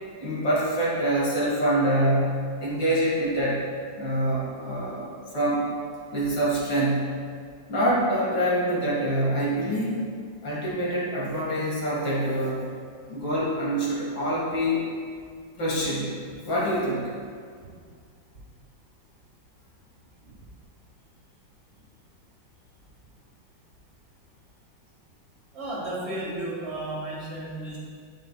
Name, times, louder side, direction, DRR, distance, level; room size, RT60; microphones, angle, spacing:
voice 1, 0.2-3.6 4.0-5.1 5.3-5.7 6.1-7.2 7.7-10.1 10.4-12.7 13.1-14.9 15.6-16.2 16.4-17.1, right 1 dB, 60° left, -6 dB, 2.6 m, -25 dB
voice 2, 25.5-27.8, right 1 dB, 35° right, -6 dB, 2.1 m, -33 dB
12.0 x 5.2 x 2.3 m, 2.1 s
omnidirectional pair, 2.2 m